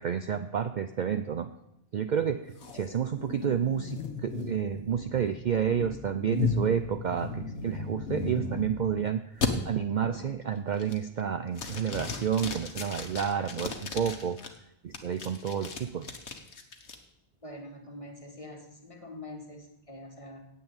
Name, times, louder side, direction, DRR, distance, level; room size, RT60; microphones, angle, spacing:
voice 1, 0.0-1.5 1.9-14.4 14.8-16.1, right 8 dB, 55° right, 9 dB, 0.6 m, -30 dB
sound 1, 2.6-8.9 9.4-9.5 10.0-10.4 10.8-11.2 11.6-14.5 14.9-17.0, left 4 dB, 75° left, 1.6 m, -35 dB
voice 2, 17.4-20.4, left 1 dB, 30° left, 2 dB, 1.9 m, -45 dB
9.4 x 8.5 x 8.7 m, 0.81 s
omnidirectional pair, 1.2 m